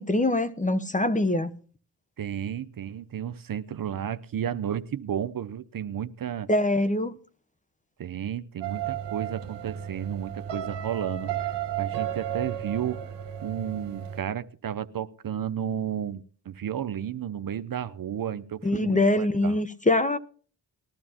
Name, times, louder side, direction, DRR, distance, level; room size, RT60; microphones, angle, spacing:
voice 1, 0.0-1.5 6.5-7.1 18.6-20.2, left 2 dB, 15° left, 0.9 m, -23 dB
voice 2, 2.2-6.5 8.0-11.5 11.8-13.0 13.4-19.6, right 9 dB, 45° right, 0.8 m, -32 dB
sound 1, 8.6-14.2, right 10 dB, 65° right, 1.3 m, -33 dB
20.0 x 12.0 x 2.9 m
supercardioid pair, 45°, 46 cm